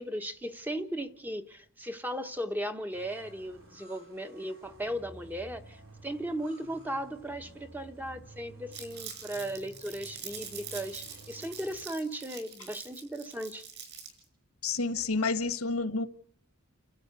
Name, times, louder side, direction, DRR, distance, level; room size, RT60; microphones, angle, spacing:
voice 1, 0.0-13.6, right 1 dB, 10° right, 1.1 m, -37 dB
sound 1, 2.9-11.8, right 1 dB, 75° right, 4.6 m, -53 dB
Crumpling crinkling, 8.7-14.2, right 7 dB, 55° right, 6.1 m, -44 dB
voice 2, 14.6-16.1, left 3 dB, 80° left, 1.4 m, -29 dB
30.0 x 13.0 x 8.0 m
head